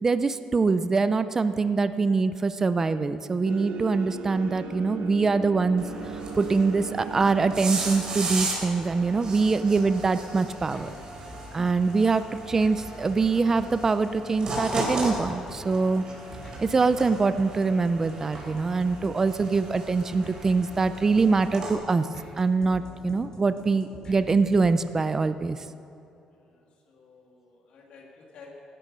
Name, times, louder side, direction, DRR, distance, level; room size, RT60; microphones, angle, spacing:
voice 1, 0.0-5.8 6.3-11.0 11.5-16.0 16.6-22.1 22.4-25.6, right 4 dB, 20° right, 12 dB, 0.5 m, -24 dB
sound 1, 3.5-10.0, right 4 dB, 80° right, 1.4 m, -38 dB
sound 2, 5.8-21.7, right 2 dB, 40° right, 3.5 m, -36 dB
sound 3, 9.8-25.0, left 2 dB, 35° left, 4.0 m, -47 dB
voice 2, 26.3-28.6, left 4 dB, 65° left, -1 dB, 2.4 m, -51 dB
16.5 x 12.5 x 5.5 m, 2.9 s
cardioid pair, 145°, 2 cm